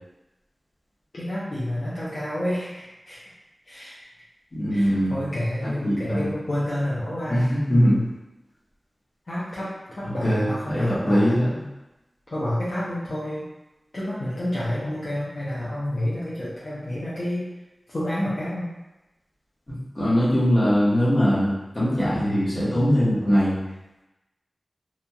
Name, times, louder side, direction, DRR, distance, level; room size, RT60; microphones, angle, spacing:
voice 1, 1.1-3.3 3.7-4.0 4.7-7.4 9.3-11.4 12.3-13.4 13.9-17.5 17.9-18.7, left 1 dB, 60° left, -10 dB, 0.7 m, -29 dB
voice 2, 4.5-5.2 5.6-6.3 7.3-8.1 10.0-11.6 19.7-23.6, equal, 35° left, -9 dB, 1.2 m, -22 dB
2.9 x 2.4 x 2.3 m, 1.0 s
wide cardioid pair, 60°, 0 cm